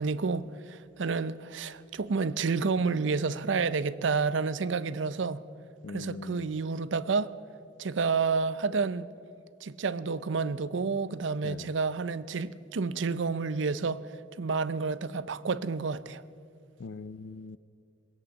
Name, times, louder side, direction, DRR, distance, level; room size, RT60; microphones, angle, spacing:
voice 1, 0.0-5.4 5.9-7.3 7.8-9.1 9.6-14.0 14.4-16.2, right 4 dB, 70° right, 0.5 m, -30 dB
voice 2, 5.8-6.5 11.4-11.7 16.8-17.6, left 4 dB, 70° left, 0.4 m, -41 dB
20.5 x 8.4 x 8.2 m
head